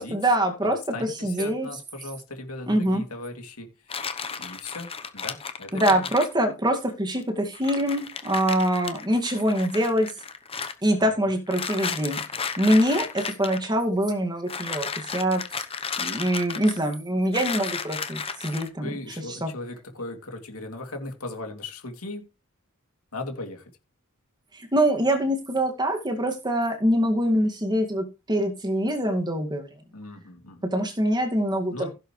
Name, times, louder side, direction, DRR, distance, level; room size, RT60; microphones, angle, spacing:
voice 1, 0.0-0.8 1.2-1.7 2.7-3.0 5.7-10.1 10.8-12.2 12.6-15.4 16.0-18.9 19.4-19.5 24.5-29.7 30.6-31.9, right 1 dB, 20° right, 4 dB, 2.1 m, -24 dB
voice 2, 0.6-6.1 11.0-11.3 18.8-22.3 23.1-23.7 29.9-30.7 31.7-31.9, left 2 dB, 75° left, 4 dB, 2.8 m, -38 dB
sound 1, 3.9-6.3 7.2-7.3 7.5-10.7 11.5-13.7 14.5-16.9 17.3-18.7, left 5 dB, 25° left, 0.9 m, -33 dB
16.0 x 7.6 x 3.2 m, 0.28 s
head